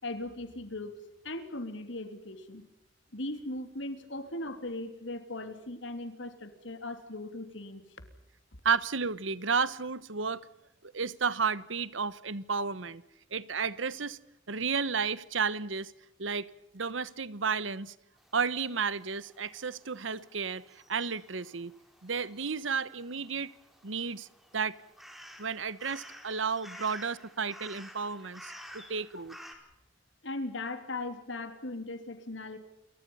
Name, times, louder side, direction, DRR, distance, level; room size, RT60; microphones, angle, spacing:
voice 1, 0.0-0.9 1.2-2.6 3.1-7.8 26.7-26.9 28.2-28.3 29.1-29.2 30.2-32.6, left 2 dB, 75° left, 3.3 m, -38 dB
voice 2, 8.6-10.5 10.8-13.0 13.3-14.2 14.5-15.9 16.2-16.5 16.7-17.9 18.3-20.6 20.9-21.7 22.0-23.5 23.8-24.3 24.5-24.8 25.4-29.4, right 5 dB, 90° right, 1.2 m, -32 dB
sound 1, 18.2-29.6, equal, ahead, 4.4 m, -52 dB
29.5 x 24.0 x 5.6 m
head